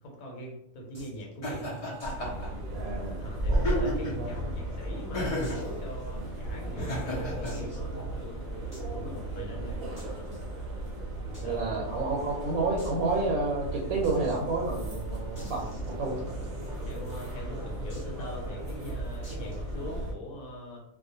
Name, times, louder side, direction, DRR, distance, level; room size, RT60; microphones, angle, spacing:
voice 1, 0.0-1.8 3.2-8.5 8.9-9.8 11.4-11.7 16.8-20.8, left 1 dB, 85° left, -1 dB, 1.1 m, -42 dB
sound 1, 0.9-1.2 2.0-2.3 2.5-2.6 3.0-3.1 3.8-4.6 5.4-5.8 6.3-6.4 7.4-7.9 8.7-8.9 10.0-10.4 11.3-11.5 11.7-11.8 12.1-12.2 12.8-13.0 14.0-14.4 15.3-16.4 17.9-18.2 19.2-19.6, left 1 dB, 15° left, 1.1 m, -50 dB
Laughter, 1.4-2.5 3.5-4.2 5.1-5.6 6.7-7.5, left 1 dB, 55° left, 0.4 m, -32 dB
sound 2, 2.0-20.1, right 1 dB, 55° right, 0.7 m, -35 dB
voice 2, 2.7-4.3 6.2-6.3 11.4-16.2, right 3 dB, 75° right, -3 dB, 1.0 m, -31 dB
2.3 x 2.1 x 2.7 m, 0.80 s
omnidirectional pair, 1.5 m